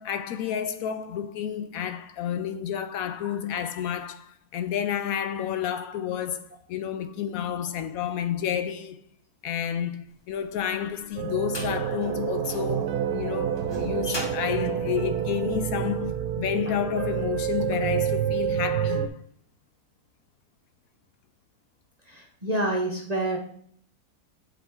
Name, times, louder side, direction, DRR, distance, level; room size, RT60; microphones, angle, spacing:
voice 1, 0.0-9.0 9.4-19.2, left 9 dB, 70° left, 0.9 m, -30 dB
sound 1, 10.5-15.8, left 1 dB, 20° left, 0.8 m, -39 dB
sound 2, 11.2-19.1, right 9 dB, 75° right, 1.1 m, -28 dB
voice 2, 22.1-23.4, right 1 dB, 35° right, 0.7 m, -28 dB
11.0 x 4.0 x 3.5 m
omnidirectional pair, 1.6 m